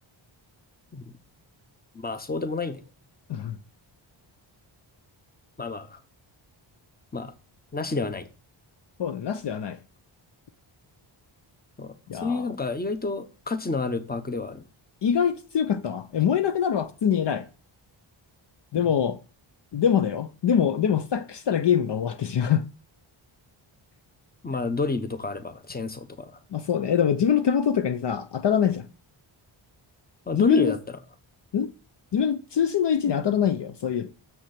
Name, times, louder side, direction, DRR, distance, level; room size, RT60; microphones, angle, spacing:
voice 1, 1.9-2.8 5.6-6.0 7.1-7.3 7.7-8.3 11.8-11.9 12.2-14.6 24.4-26.3 30.3-30.8, left 3 dB, 20° left, 1.0 m, -29 dB
voice 2, 9.0-9.8 12.1-12.4 15.0-17.5 18.7-19.2 19.7-22.6 26.5-28.9 30.3-30.7 31.5-31.7 32.1-34.1, left 8 dB, 55° left, 0.7 m, -24 dB
7.2 x 6.0 x 5.9 m
wide cardioid pair, 105°, 50 cm